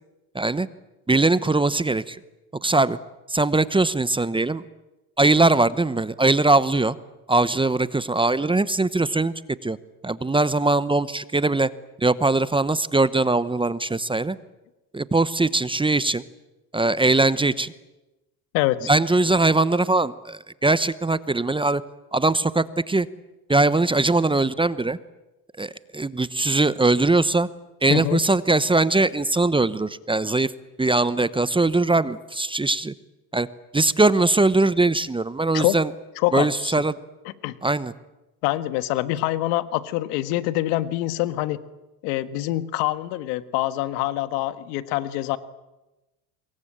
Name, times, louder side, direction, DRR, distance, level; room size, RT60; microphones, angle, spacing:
voice 1, 0.3-0.7 1.1-2.2 2.6-3.0 3.3-4.6 5.2-7.0 7.3-9.3 9.6-9.8 10.0-11.7 12.0-14.4 14.9-16.2 16.7-17.7 18.9-21.8 22.1-23.1 23.5-25.0 25.6-27.5 27.8-30.5 30.8-32.9 33.3-33.5 33.7-35.9 36.3-37.0 37.6-37.9, right 2 dB, 10° right, 16 dB, 0.9 m, -21 dB
voice 2, 18.5-18.9 27.9-28.2 35.5-35.8 36.2-36.7 37.2-37.5 38.4-41.6 42.0-45.4, left 16 dB, 80° left, 13 dB, 1.6 m, -25 dB
26.5 x 22.5 x 8.9 m, 1.0 s
supercardioid pair, 100°, 46 cm